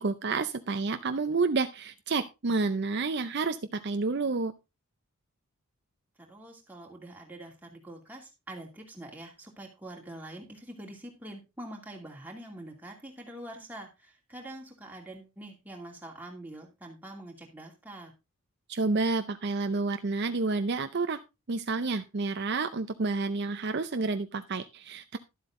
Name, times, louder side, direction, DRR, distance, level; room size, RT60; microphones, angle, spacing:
voice 1, 0.0-4.5 18.7-21.2 21.5-25.2, right 3 dB, 50° right, 9 dB, 0.6 m, -29 dB
voice 2, 6.3-18.1, right 1 dB, 10° right, 0 dB, 2.5 m, -45 dB
12.0 x 7.9 x 3.7 m, 0.25 s
head